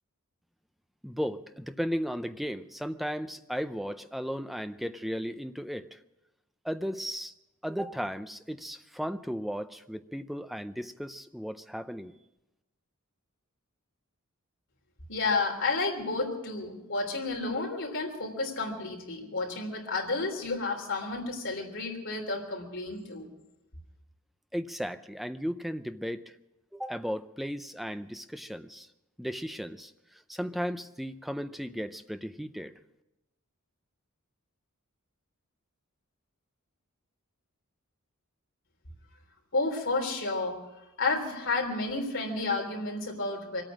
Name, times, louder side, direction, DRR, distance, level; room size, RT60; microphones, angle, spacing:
voice 1, 1.0-6.0 6.6-7.3 7.6-12.2 24.5-26.4 26.7-28.9 29.2-29.9 30.3-32.7, equal, ahead, 10 dB, 0.5 m, -35 dB
voice 2, 15.1-23.3 39.5-40.6 41.0-43.6, left 3 dB, 60° left, 0 dB, 3.6 m, -31 dB
25.0 x 9.0 x 6.2 m, 0.95 s
head